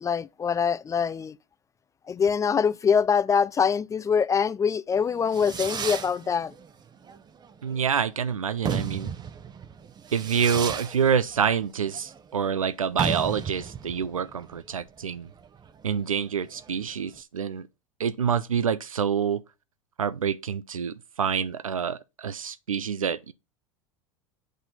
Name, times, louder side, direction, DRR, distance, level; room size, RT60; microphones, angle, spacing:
voice 1, 0.0-1.4 2.1-6.5, left 6 dB, 20° left, 0.4 m, -24 dB
Fireworks, 5.0-17.2, right 7 dB, 25° right, 0.8 m, -35 dB
voice 2, 7.6-9.1 10.1-15.3 15.8-17.7 18.0-19.4 20.0-23.3, right 7 dB, 90° right, 0.6 m, -27 dB
8.2 x 4.3 x 5.5 m
hypercardioid pair, 85°, 17 cm